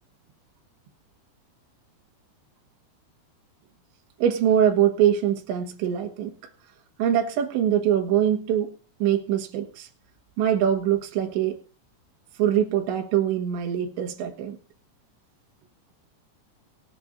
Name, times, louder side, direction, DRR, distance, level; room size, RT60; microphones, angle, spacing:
voice 1, 4.2-6.3 7.0-8.7 9.0-9.9 10.4-11.6 12.4-14.6, right 10 dB, 80° right, 3 dB, 3.8 m, -23 dB
23.0 x 8.4 x 2.6 m, 0.34 s
omnidirectional pair, 5.2 m